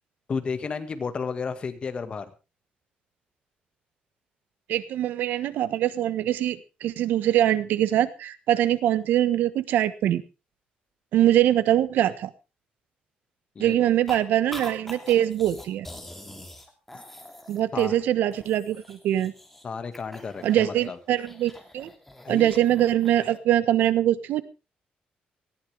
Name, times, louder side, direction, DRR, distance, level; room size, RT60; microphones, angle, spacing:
voice 1, 0.3-2.3 13.6-13.9 17.7-18.0 19.6-21.0 22.2-22.5, left 5 dB, 35° left, 10 dB, 1.8 m, -32 dB
voice 2, 4.7-10.2 11.1-12.3 13.6-15.9 17.5-19.3 20.4-21.9 22.3-24.4, right 12 dB, 85° right, 15 dB, 1.2 m, -23 dB
sound 1, 14.1-14.2 14.5-18.0 18.3-19.6 19.9-23.4, left 1 dB, 5° left, 2.7 m, -44 dB
19.0 x 14.5 x 3.5 m, 0.30 s
cardioid pair, 150°, 3 cm